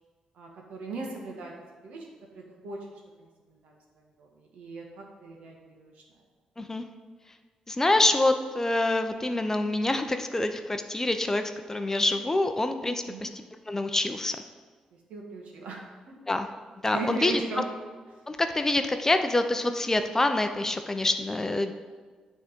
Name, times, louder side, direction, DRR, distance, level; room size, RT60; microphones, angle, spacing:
voice 1, 0.3-1.5 1.8-2.8 3.2-3.7 4.2-5.9 13.1-13.3 15.1-16.1 16.9-17.7, right 3 dB, 80° right, 0 dB, 1.5 m, -38 dB
voice 2, 7.7-13.3 13.7-14.4 16.3-16.5 16.8-17.4 18.3-21.7, left 2 dB, 20° left, 7 dB, 0.6 m, -26 dB
8.6 x 3.7 x 5.2 m, 1.4 s
cardioid pair, 70°, 2 cm